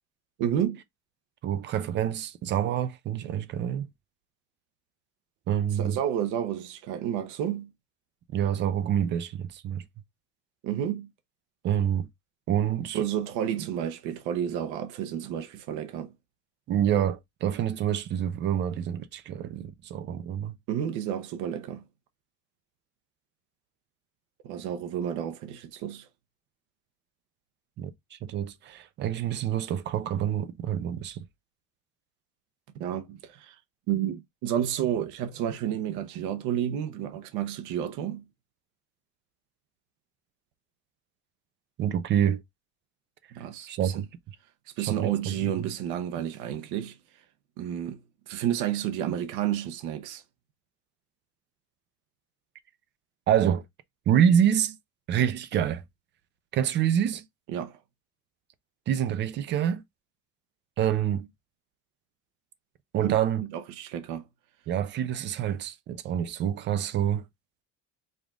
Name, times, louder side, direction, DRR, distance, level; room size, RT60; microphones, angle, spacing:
voice 1, 0.4-0.8 5.7-7.7 10.6-11.1 12.9-16.1 20.7-21.8 24.4-26.1 32.7-33.6 33.9-38.2 43.3-44.0 44.8-47.0 47.6-48.0 48.3-50.2 57.5-57.8 63.0-63.1 63.5-64.3, right 10 dB, 70° right, 0.9 m, -31 dB
voice 2, 1.4-3.9 5.5-6.0 8.3-9.8 11.6-12.1 12.5-13.0 16.7-20.5 27.8-31.2 41.8-42.4 43.7-44.1 44.9-45.7 53.3-53.6 54.1-54.8 55.1-55.8 56.5-57.2 58.9-59.8 60.8-61.3 62.9-63.4 64.7-67.2, right 9 dB, 35° right, 0.5 m, -27 dB
5.1 x 2.5 x 3.6 m
cardioid pair, 175°, 31 cm